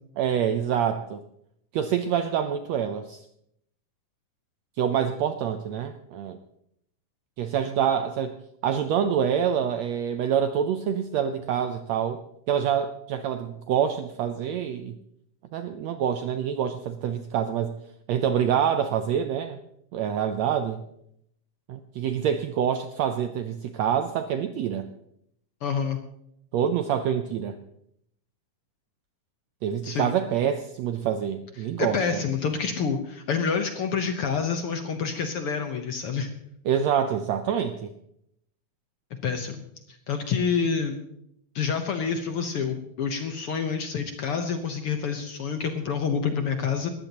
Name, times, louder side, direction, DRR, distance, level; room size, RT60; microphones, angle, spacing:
voice 1, 0.2-1.2 1.7-3.2 4.8-6.4 7.4-8.4 8.6-12.2 12.5-15.0 15.5-17.7 18.1-19.6 19.9-20.8 21.7-24.9 26.5-27.6 29.6-32.2 36.6-37.9, right 8 dB, 80° right, 8 dB, 1.6 m, -26 dB
voice 2, 25.6-26.0 29.8-30.1 31.8-36.3 39.2-39.6 40.1-41.0 41.5-46.9, left 6 dB, 70° left, 6 dB, 1.3 m, -27 dB
20.0 x 15.0 x 2.9 m, 0.74 s
omnidirectional pair, 3.8 m